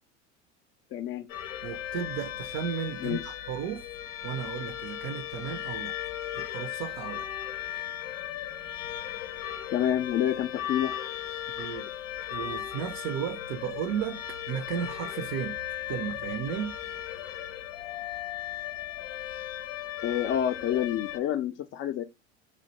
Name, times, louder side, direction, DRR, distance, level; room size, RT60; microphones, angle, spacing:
voice 1, 0.9-1.3 3.0-3.2 9.7-11.0 20.0-22.0, left 10 dB, 35° left, 0.4 m, -28 dB
sound 1, 1.3-21.2, left 11 dB, 80° left, 0.6 m, -37 dB
voice 2, 1.6-3.9 4.2-6.0 6.3-7.3 11.6-11.9 12.3-15.6 15.9-16.8, right 9 dB, 50° right, 0.5 m, -34 dB
3.1 x 2.5 x 2.8 m
hypercardioid pair, 80°, 36 cm